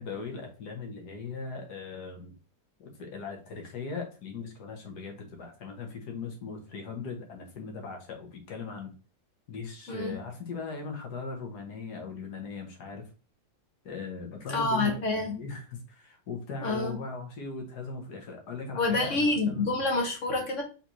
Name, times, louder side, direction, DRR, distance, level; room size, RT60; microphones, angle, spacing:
voice 1, 0.0-2.3 2.8-8.9 9.5-13.1 13.8-19.8, left 4 dB, 60° left, 3 dB, 1.5 m, -39 dB
voice 2, 14.5-15.3 16.6-17.0 18.7-20.6, left 2 dB, 45° left, 1 dB, 1.3 m, -27 dB
4.2 x 4.0 x 2.9 m, 0.34 s
omnidirectional pair, 2.1 m